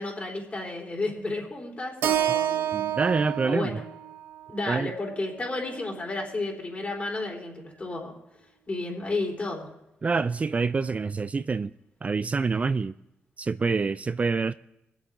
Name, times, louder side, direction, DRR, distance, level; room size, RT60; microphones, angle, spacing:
voice 1, 0.0-2.8 3.5-3.8 4.5-8.2 8.7-9.7, left 2 dB, 35° left, 4.1 m, -32 dB
Keyboard (musical), 2.0-6.2, right 11 dB, 90° right, 0.6 m, -30 dB
voice 2, 2.7-3.8 4.7-4.9 10.0-11.7 12.0-12.9 13.4-14.5, right 4 dB, 35° right, 0.4 m, -26 dB
21.5 x 8.1 x 3.8 m
cardioid pair, 65°, 4 cm